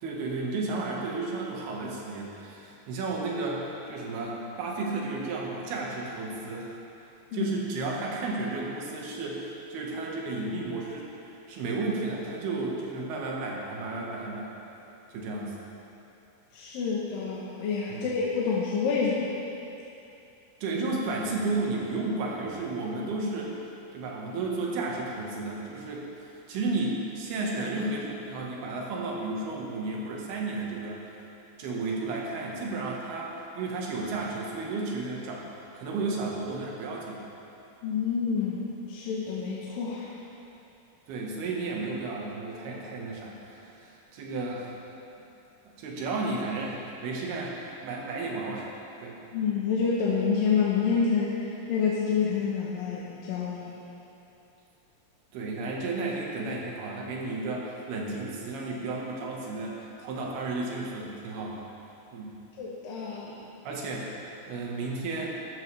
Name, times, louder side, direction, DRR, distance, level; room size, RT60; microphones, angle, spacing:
voice 1, 0.0-6.8 7.3-11.1 11.5-14.5 15.1-15.5 17.9-18.1 20.6-23.6 23.9-31.0 31.6-35.4 35.7-37.2 41.1-44.7 45.8-48.7 49.0-49.2 55.3-61.6 62.1-62.4 63.7-64.1 64.5-65.4, right 3 dB, 85° right, -2 dB, 3.5 m, -33 dB
voice 2, 16.5-19.3 37.8-38.6 38.9-40.1 49.3-53.7 62.6-63.4, left 6 dB, 75° left, -5 dB, 2.6 m, -28 dB
13.5 x 13.0 x 3.3 m, 2.9 s
omnidirectional pair, 4.4 m